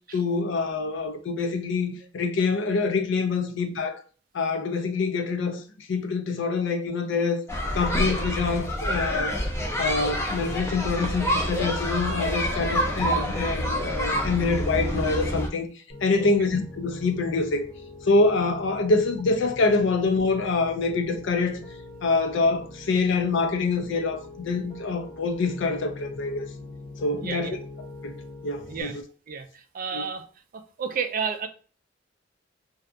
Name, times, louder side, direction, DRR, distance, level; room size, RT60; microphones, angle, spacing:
voice 1, 0.1-4.0 4.3-5.6 5.9-7.4 7.7-9.3 9.8-15.7 16.0-17.7 18.0-21.6 22.0-26.5 27.0-27.6 28.0-28.1 28.4-29.0 29.9-30.1, left 3 dB, 65° left, 0.5 m, -25 dB
sound 1, 7.5-15.5, equal, 15° left, 0.5 m, -27 dB
Piano, 15.9-28.8, left 2 dB, 50° left, 1.0 m, -43 dB
voice 2, 27.2-27.6 28.7-29.0 29.3-29.5 29.7-30.3 30.8-31.5, right 6 dB, 45° right, 0.3 m, -30 dB
2.7 x 2.3 x 2.4 m
head